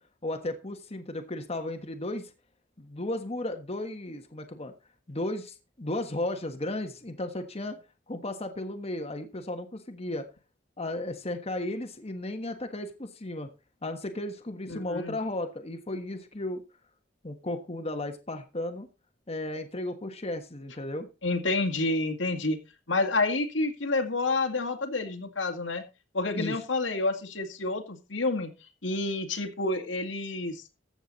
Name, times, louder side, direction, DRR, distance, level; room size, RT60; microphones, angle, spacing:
voice 1, 0.2-2.3 2.8-4.7 5.1-7.8 8.1-10.3 10.8-13.5 13.8-16.6 17.2-18.9 19.3-21.1 26.4-26.5, left 1 dB, 35° left, 5 dB, 1.4 m, -34 dB
voice 2, 14.7-15.2 21.2-22.6 22.9-25.8 26.1-28.5 28.8-30.6, left 2 dB, 85° left, 5 dB, 2.2 m, -29 dB
14.5 x 8.0 x 4.1 m, 0.30 s
head